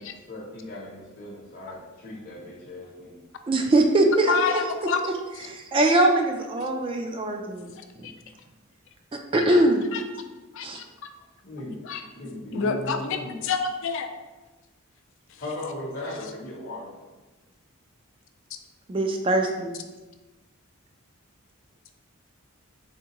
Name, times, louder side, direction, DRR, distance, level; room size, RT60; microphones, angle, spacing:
voice 1, 0.0-3.2 11.2-11.8 12.2-13.4 15.4-16.9, left 1 dB, 45° left, -5 dB, 0.7 m, -37 dB
voice 2, 3.5-4.6 5.0-5.1 5.4-7.7 9.3-9.8 10.6-10.8 18.9-19.7, right 1 dB, 25° right, 3 dB, 0.3 m, -22 dB
voice 3, 4.3-5.0 8.0-8.1 10.6-10.8 11.9-12.0 12.5-13.0 13.4-14.1, left 5 dB, 60° left, 6 dB, 0.4 m, -26 dB
3.6 x 3.5 x 2.9 m, 1.2 s
head